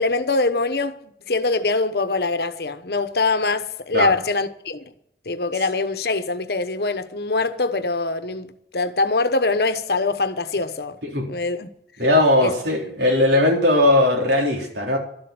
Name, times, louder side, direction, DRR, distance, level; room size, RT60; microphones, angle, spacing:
voice 1, 0.0-4.9 5.2-11.0 11.3-11.7 12.4-12.5, left 3 dB, 65° left, 1.1 m, -23 dB
voice 2, 12.0-15.0, left 1 dB, 75° right, 3.8 m, -18 dB
12.5 x 7.9 x 9.6 m
head